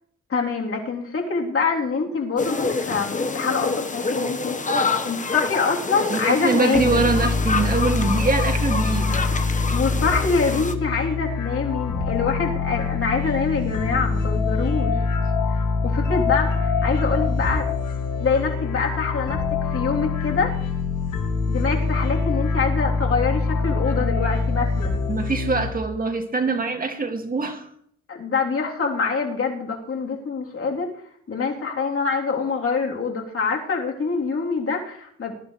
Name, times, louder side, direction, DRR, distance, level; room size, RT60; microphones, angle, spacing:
voice 1, 0.3-4.6 5.0-7.0 9.7-15.0 15.5-15.6 15.8-17.6 18.2-20.6 21.5-25.0 28.1-30.9 31.3-35.4, left 4 dB, 45° left, -1 dB, 3.4 m, -25 dB
sound 1, 2.4-10.7, left 4 dB, 25° left, 1.3 m, -27 dB
voice 2, 6.1-9.4 25.1-27.7, right 3 dB, 30° right, 5 dB, 2.3 m, -24 dB
sound 2, 6.7-25.7, left 4 dB, 85° left, 2.1 m, -24 dB
20.5 x 11.5 x 3.3 m, 0.66 s
cardioid pair, 90°, 30 cm